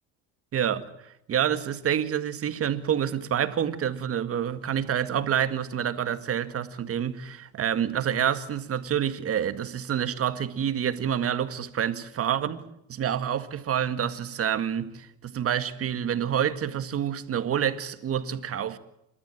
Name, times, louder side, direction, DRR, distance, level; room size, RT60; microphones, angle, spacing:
voice 1, 0.5-12.6 12.9-18.8, right 9 dB, 45° right, 1.9 m, -28 dB
28.0 x 13.5 x 9.0 m
supercardioid pair, 90°, 33 cm